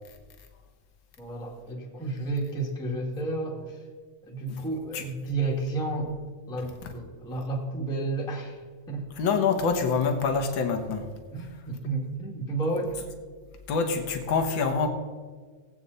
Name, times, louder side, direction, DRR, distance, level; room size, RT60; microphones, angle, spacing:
voice 1, 1.2-3.8 4.2-6.1 6.5-8.6 8.9-9.1 11.3-12.9, right 2 dB, ahead, 1.3 m, -31 dB
voice 2, 9.2-11.1 13.7-14.9, left 5 dB, 55° left, 1.4 m, -26 dB
18.0 x 8.6 x 4.1 m
omnidirectional pair, 3.5 m